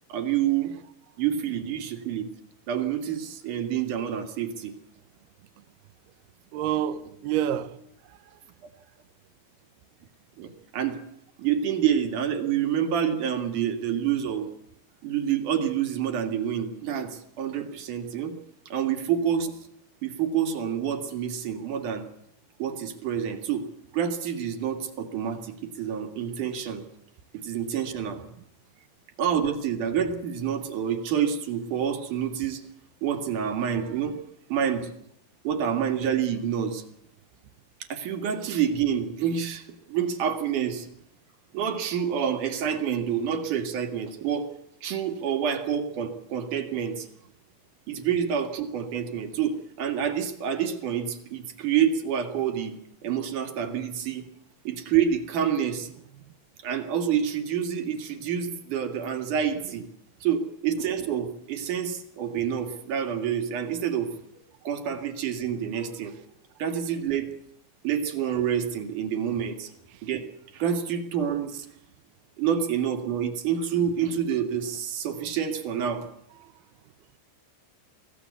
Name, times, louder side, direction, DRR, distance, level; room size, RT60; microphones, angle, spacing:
voice 1, 0.1-0.7 1.2-2.3 2.7-4.7 10.4-11.0 11.4-14.5 15.0-18.3 18.7-19.5 20.0-22.1 22.6-23.7 23.9-26.8 27.4-28.2 29.2-32.6 33.0-34.2 34.5-34.9 35.4-36.8 37.8-40.9 41.5-44.5 44.8-47.1 47.9-52.8 53.0-54.2 54.6-55.9 56.6-59.9 60.2-64.1 64.6-66.1 66.6-67.3 67.8-69.7 70.0-70.3 70.5-71.7 72.4-76.0, right 8 dB, 55° right, 2.7 m, -28 dB
voice 2, 6.5-7.8 8.1-8.4 69.9-70.0 76.4-76.5, right 11 dB, 75° right, 2.4 m, -29 dB
23.0 x 17.0 x 8.3 m
omnidirectional pair, 5.8 m